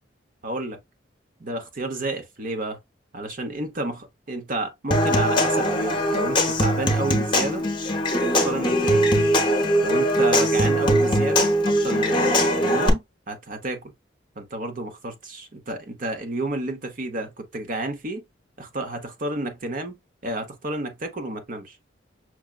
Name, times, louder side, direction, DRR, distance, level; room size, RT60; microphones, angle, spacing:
voice 1, 0.4-0.8 1.4-2.8 3.1-7.7 8.3-9.0 9.8-13.9 14.4-18.2 18.6-21.8, right 2 dB, 45° right, 0.9 m, -31 dB
Human voice / Acoustic guitar / Percussion, 4.9-12.9, equal, 25° left, 0.8 m, -21 dB
6.1 x 2.2 x 2.3 m
head